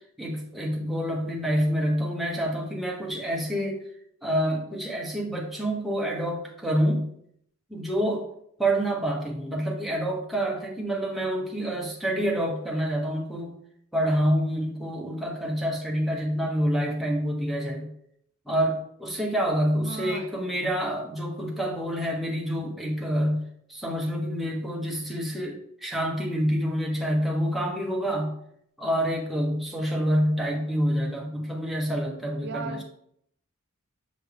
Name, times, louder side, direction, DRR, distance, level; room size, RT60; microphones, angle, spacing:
voice 1, 0.2-3.8 4.2-7.0 7.7-8.3 8.6-13.5 13.9-17.9 18.5-23.4 23.7-28.3 28.8-32.8, equal, ahead, -2 dB, 1.1 m, -27 dB
voice 2, 19.7-20.4 32.4-32.8, right 4 dB, 50° right, 6 dB, 0.4 m, -36 dB
6.7 x 4.4 x 3.4 m, 0.70 s
head